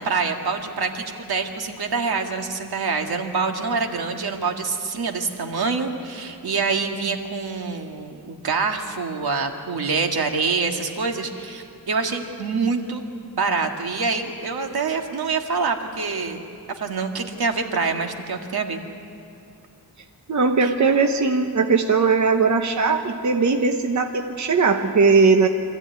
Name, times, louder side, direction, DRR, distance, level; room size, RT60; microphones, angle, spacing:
voice 1, 0.0-13.0 13.4-16.5 16.8-18.8 20.6-20.7, right 4 dB, 90° right, 4 dB, 1.9 m, -26 dB
voice 2, 20.3-25.5, right 4 dB, 50° right, 5 dB, 1.1 m, -19 dB
25.0 x 15.0 x 9.4 m, 2.6 s
wide cardioid pair, 165°, 36 cm